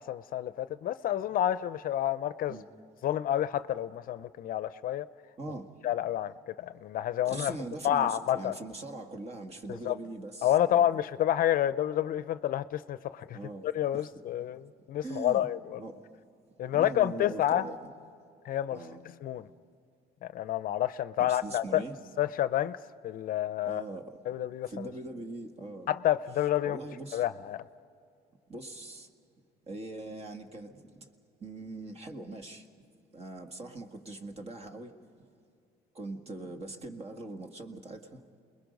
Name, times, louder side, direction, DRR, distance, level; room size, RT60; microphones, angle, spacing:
voice 1, 0.0-2.6 3.0-5.1 5.8-7.5 7.8-8.5 9.7-10.0 10.4-13.4 13.6-15.8 16.6-17.7 18.4-18.8 19.2-19.5 20.2-21.8 22.2-22.8 23.0-23.8 24.3-24.9 25.9-26.8 27.1-27.6, left 12 dB, 60° left, 14 dB, 0.6 m, -29 dB
voice 2, 5.4-5.7 7.2-10.9 13.3-14.1 15.0-15.5 15.8-16.1 16.7-17.9 18.7-19.0 21.3-22.0 23.6-24.2 24.7-25.9 26.6-27.2 28.5-29.1 29.7-31.1 31.4-32.7 33.1-35.0 35.9-38.3, right 2 dB, 40° right, 6 dB, 1.9 m, -42 dB
28.5 x 21.5 x 5.3 m, 2.5 s
cardioid pair, 110°, 17 cm